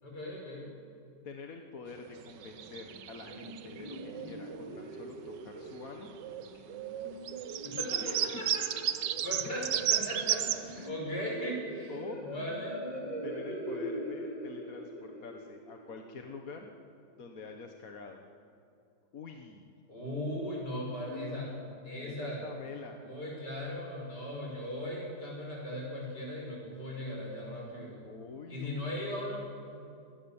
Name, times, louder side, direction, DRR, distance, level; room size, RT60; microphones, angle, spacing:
voice 1, 0.0-0.7 7.5-11.9 12.2-12.8 19.9-21.5 21.8-22.4 23.0-28.0 28.5-29.4, equal, 75° left, -2 dB, 6.7 m, -38 dB
voice 2, 1.2-6.1 8.0-8.2 9.4-9.7 10.0-10.2 10.8-11.1 11.9-12.2 13.2-16.7 17.2-18.2 19.1-19.7 21.0-21.7 22.0-23.0 28.0-28.8, left 4 dB, 55° left, 3 dB, 1.7 m, -46 dB
sound 1, 1.9-4.9 5.2-5.8 6.1-10.9, right 10 dB, 90° right, 1.5 m, -34 dB
sound 2, 2.9-16.9, equal, 25° right, 2.6 m, -43 dB
25.5 x 19.5 x 7.2 m, 2.5 s
omnidirectional pair, 1.8 m